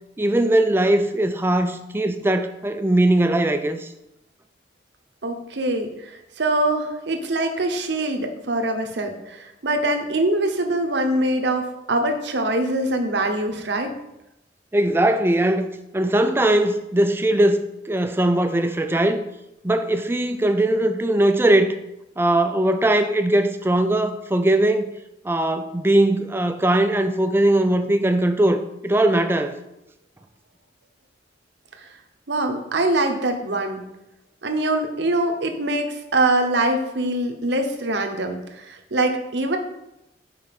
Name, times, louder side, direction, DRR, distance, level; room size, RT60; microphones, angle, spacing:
voice 1, 0.2-3.9 14.7-15.7 15.9-19.2 19.6-21.8 22.2-24.9 25.2-29.6, right 1 dB, 10° right, 0.4 m, -20 dB
voice 2, 5.2-13.9 31.8-31.9 32.3-33.8 34.4-39.6, right 2 dB, 70° right, 0.9 m, -23 dB
5.3 x 4.6 x 5.8 m
head